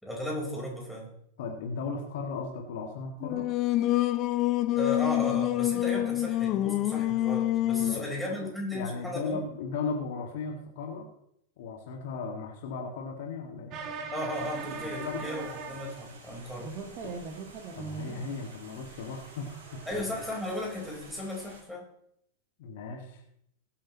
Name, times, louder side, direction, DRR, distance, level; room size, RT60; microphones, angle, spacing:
voice 1, 0.0-1.1 4.8-9.4 14.1-16.7 19.9-21.8, left 1 dB, ahead, -4 dB, 4.5 m, -35 dB
voice 2, 1.4-3.5 6.0-6.1 7.8-11.1 11.6-13.7 14.8-15.3 17.0-17.1 17.7-20.2 22.6-23.2, left 4 dB, 55° left, 1 dB, 2.0 m, -37 dB
Singing, 3.2-8.1, left 15 dB, 35° left, 0.7 m, -27 dB
sound 1, 13.7-16.4 16.6-18.4 19.2-21.0, right 5 dB, 40° right, 1.6 m, -41 dB
sound 2, 14.3-21.6, right 3 dB, 60° right, 3.0 m, -52 dB
21.0 x 8.6 x 3.1 m, 0.73 s
figure-of-eight pair, 90°, 0 cm